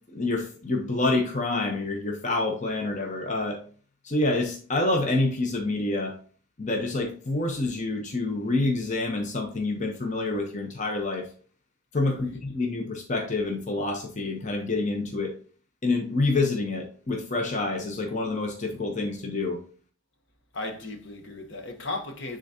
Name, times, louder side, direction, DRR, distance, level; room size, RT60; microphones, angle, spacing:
voice 1, 0.1-3.6 4.0-6.1 6.6-11.3 11.9-15.3 15.8-19.6, left 2 dB, 35° left, 0.8 m, -27 dB
voice 2, 20.5-22.4, left 2 dB, 55° left, 1.0 m, -36 dB
10.0 x 3.7 x 2.7 m
head